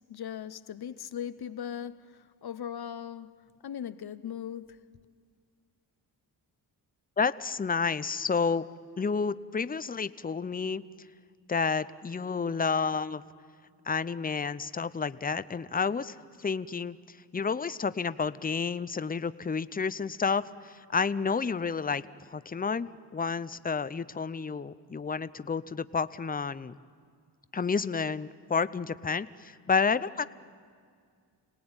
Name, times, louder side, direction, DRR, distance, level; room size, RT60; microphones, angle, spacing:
voice 1, 0.1-2.0 2.4-3.3 3.6-4.8, left 9 dB, 60° left, 0.9 m, -38 dB
voice 2, 7.2-8.6 9.0-10.8 11.5-13.2 13.9-17.0 17.3-22.0 22.3-26.8 27.5-30.3, left 5 dB, 20° left, 0.7 m, -30 dB
27.5 x 19.0 x 8.9 m
cardioid pair, 70°, 43 cm